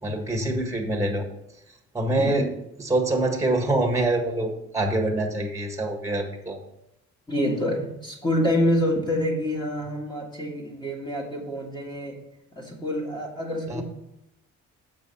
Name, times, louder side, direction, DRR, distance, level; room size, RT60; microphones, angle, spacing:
voice 1, 0.0-1.3 1.9-2.5 2.8-6.6 13.7-13.8, right 2 dB, 10° right, 2 dB, 1.6 m, -25 dB
voice 2, 2.2-2.5 7.3-12.2 12.5-13.8, equal, 15° left, -1 dB, 1.8 m, -27 dB
7.3 x 5.4 x 5.5 m, 0.83 s
cardioid pair, 90°, 30 cm